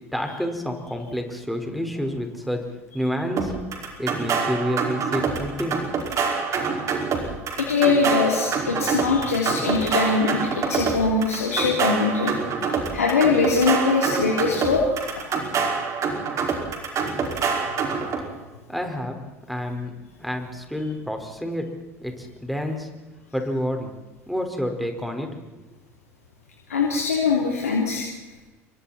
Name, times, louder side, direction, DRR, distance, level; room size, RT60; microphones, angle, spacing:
voice 1, 0.1-2.6 2.9-3.5 4.0-5.8 18.7-19.2 19.5-21.6 22.0-22.9 23.3-23.9 24.3-25.3, equal, ahead, 3 dB, 4.9 m, -28 dB
sound 1, 3.4-18.2, right 5 dB, 40° right, 5.2 m, -26 dB
voice 2, 7.6-12.3 12.9-14.8 26.7-28.1, left 4 dB, 85° left, -2 dB, 3.4 m, -22 dB
28.5 x 23.5 x 4.4 m, 1.2 s
hypercardioid pair, 70°, 8 cm